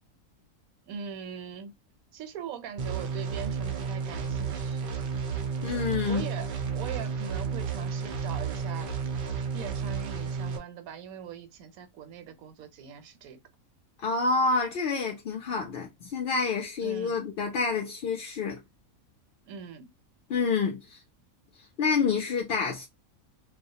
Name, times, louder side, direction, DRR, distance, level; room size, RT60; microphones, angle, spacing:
voice 1, 0.9-1.8 2.1-4.9 6.1-9.0 9.5-13.4 16.8-17.2 19.5-19.9, right 7 dB, 80° right, 1.0 m, -41 dB
sound 1, 2.8-10.6, right 6 dB, 60° right, 0.5 m, -32 dB
voice 2, 5.6-6.3 14.0-18.6 20.3-21.0 21.8-22.9, left 4 dB, 60° left, 0.6 m, -28 dB
2.3 x 2.0 x 2.6 m
omnidirectional pair, 1.5 m